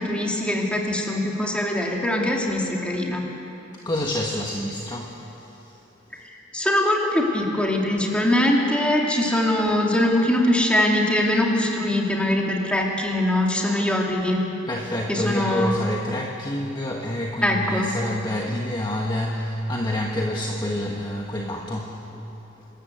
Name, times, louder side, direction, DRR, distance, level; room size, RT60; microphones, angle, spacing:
voice 1, 0.0-3.2 6.5-14.5 15.1-15.7 17.4-17.9, left 1 dB, 5° left, -1 dB, 2.5 m, -22 dB
voice 2, 3.7-5.8 6.1-6.2 14.7-22.2 22.6-22.7, left 1 dB, 20° left, -1 dB, 1.3 m, -28 dB
26.0 x 14.0 x 7.9 m, 3.0 s
head